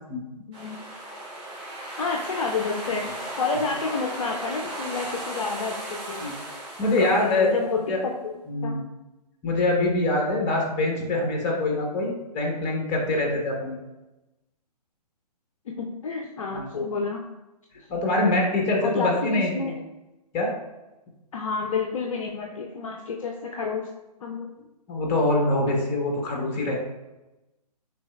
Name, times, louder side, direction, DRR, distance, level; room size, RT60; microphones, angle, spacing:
sound 1, 0.5-7.8, right 1 dB, 20° right, 1.6 m, -36 dB
voice 1, 2.0-3.1 3.3-6.2 6.8-8.1 8.6-8.8 15.8-17.2 18.8-19.7 21.3-23.9 24.2-24.5, left 4 dB, 55° left, 1 dB, 0.5 m, -29 dB
voice 2, 6.8-7.5 7.9-8.0 8.5-8.8 9.4-13.8 16.5-16.7 17.9-19.8 20.3-20.5 24.9-26.8, left 2 dB, 25° left, 0 dB, 1.1 m, -24 dB
6.0 x 3.8 x 2.3 m, 1.0 s
figure-of-eight pair, 130°, 21 cm